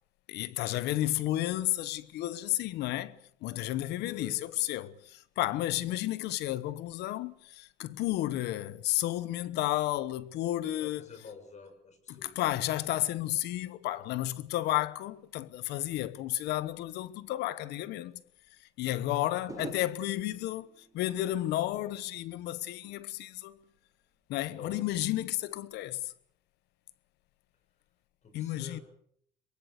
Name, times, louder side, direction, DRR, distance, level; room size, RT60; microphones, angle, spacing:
voice 1, 0.3-11.0 12.1-18.2 18.6-23.6 24.3-26.1 28.3-28.8, left 15 dB, 85° left, 1.1 m, -32 dB
voice 2, 4.0-4.4 9.5-9.6 10.8-12.4 18.9-19.7 24.5-24.9 28.2-28.8, left 4 dB, 45° left, 6.2 m, -48 dB
sound 1, 18.1-18.2 19.5-22.6 22.9-23.3, right 4 dB, 20° right, 1.8 m, -49 dB
23.5 x 22.5 x 6.7 m
cardioid pair, 110°, 17 cm